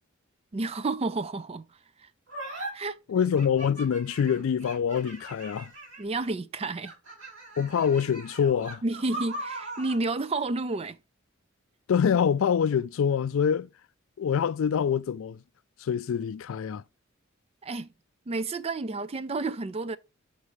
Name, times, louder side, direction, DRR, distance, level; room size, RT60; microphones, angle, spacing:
voice 1, 0.5-1.6 2.5-3.0 6.0-6.9 8.8-11.0 17.6-17.9 18.3-20.0, right 3 dB, 30° right, 0.4 m, -30 dB
sound 1, 2.3-2.7 3.3-6.2 6.8-10.0, right 1 dB, 60° right, 3.4 m, -40 dB
voice 2, 3.1-5.7 7.6-8.8 11.9-13.7 14.2-15.4 15.8-16.8, left 7 dB, 65° left, 0.3 m, -25 dB
5.4 x 4.9 x 4.9 m
head